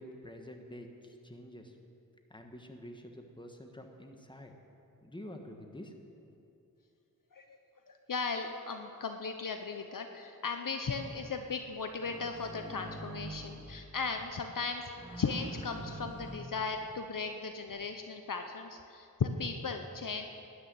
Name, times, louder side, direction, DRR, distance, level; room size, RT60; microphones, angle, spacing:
voice 1, 0.0-1.8 2.3-4.5 5.0-5.9, equal, 15° left, 4 dB, 1.5 m, -48 dB
voice 2, 7.9-14.8 15.2-20.3, left 4 dB, 60° left, 6 dB, 0.7 m, -37 dB
sound 1, 11.0-11.3 12.0-13.7 14.0-14.2 15.0-16.9 17.7-17.8, right 1 dB, 15° right, 3.3 m, -45 dB
12.5 x 6.7 x 9.3 m, 2.7 s
cardioid pair, 40°, 36 cm